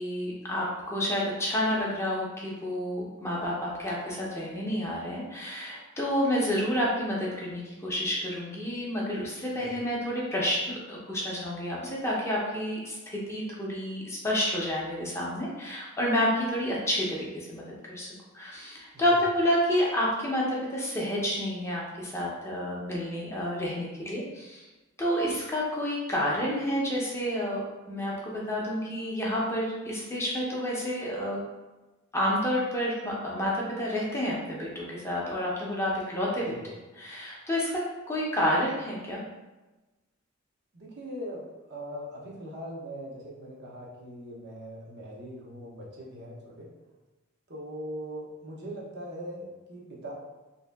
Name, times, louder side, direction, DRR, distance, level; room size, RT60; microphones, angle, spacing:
voice 1, 0.0-17.6 17.9-18.1 18.3-24.6 25.0-31.4 32.1-36.6 37.0-39.2, equal, 15° left, -4 dB, 0.6 m, -29 dB
voice 2, 40.7-46.7 47.5-50.1, equal, 55° right, -3 dB, 0.8 m, -41 dB
3.0 x 2.8 x 3.4 m, 1.1 s
head